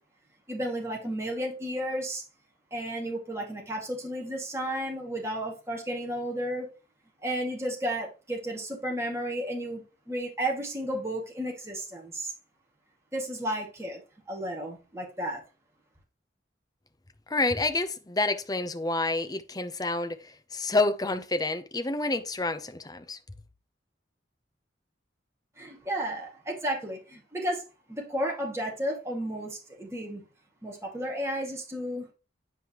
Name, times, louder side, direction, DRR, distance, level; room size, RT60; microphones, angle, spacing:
voice 1, 0.5-2.2 2.7-6.7 7.2-12.3 13.1-14.0 14.3-15.4 25.6-27.6 27.9-30.2 30.6-32.1, right 1 dB, 15° right, 2.1 m, -33 dB
voice 2, 17.3-23.2, left 2 dB, 20° left, 0.7 m, -28 dB
9.6 x 5.4 x 3.0 m
head